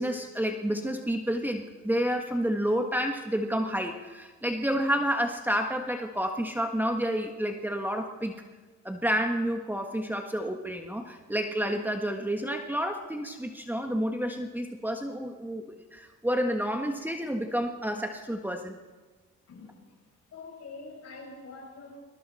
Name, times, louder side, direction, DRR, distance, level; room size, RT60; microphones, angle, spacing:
voice 1, 0.0-8.3 8.8-18.8, equal, 5° right, 4 dB, 1.5 m, -30 dB
voice 2, 19.5-19.9 20.3-22.0, left 3 dB, 55° left, -1 dB, 7.7 m, -45 dB
28.0 x 21.5 x 4.3 m, 1.3 s
cardioid pair, 90°, 30 cm